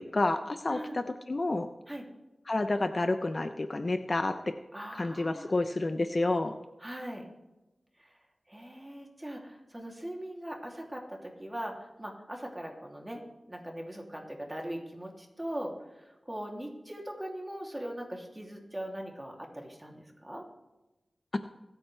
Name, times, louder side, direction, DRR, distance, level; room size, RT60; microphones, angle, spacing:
voice 1, 0.0-1.7 2.5-4.5 5.0-6.6, left 2 dB, 45° left, 8 dB, 0.8 m, -29 dB
voice 2, 0.7-1.0 1.9-2.1 4.7-5.5 6.8-7.3 8.0-8.2 8.5-13.2 13.5-20.4, right 1 dB, 15° right, 0 dB, 2.9 m, -40 dB
25.5 x 9.0 x 3.4 m, 1.0 s
wide cardioid pair, 60°, 0 cm